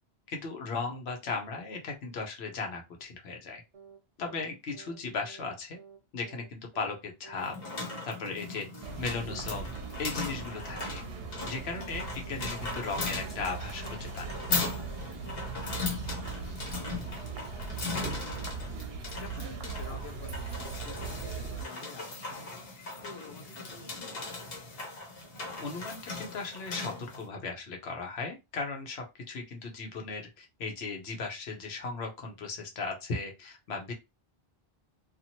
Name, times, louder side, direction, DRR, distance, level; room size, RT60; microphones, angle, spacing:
voice 1, 0.3-3.6 4.2-5.8 6.1-7.5 7.8-8.7 9.0-11.0 11.4-14.3 25.6-33.9, left 4 dB, 90° left, 2 dB, 1.0 m, -37 dB
sound 1, 3.7-4.0 4.2-4.5 4.7-5.0 5.2-5.5 5.7-6.0 6.2-6.5 6.7-7.0 7.2-7.5 7.7-8.0 8.2-8.5 8.7-9.0 9.2-9.5 9.7-10.0 10.2-10.5 10.7-11.0 11.2-11.5 11.7-12.0 12.2-12.5 12.7-13.0 13.2-13.5 13.7-14.0 14.2-14.5 14.7-15.0 15.2-15.5 15.7-16.0 16.2-16.5 16.7-17.0 17.2-17.5 17.7-18.0 18.2-18.5 18.7-19.0 19.2-19.5, right 5 dB, 40° right, 0.6 m, -52 dB
voice 2, 4.2-4.6 15.6-22.6 22.9-24.9, left 5 dB, 35° left, 6 dB, 0.5 m, -51 dB
sound 2, 7.4-27.2, left 3 dB, 70° left, 1.1 m, -38 dB
sound 3, 8.8-21.6, right 5 dB, 75° right, 0.8 m, -40 dB
2.7 x 2.5 x 2.8 m, 0.24 s
omnidirectional pair, 1.0 m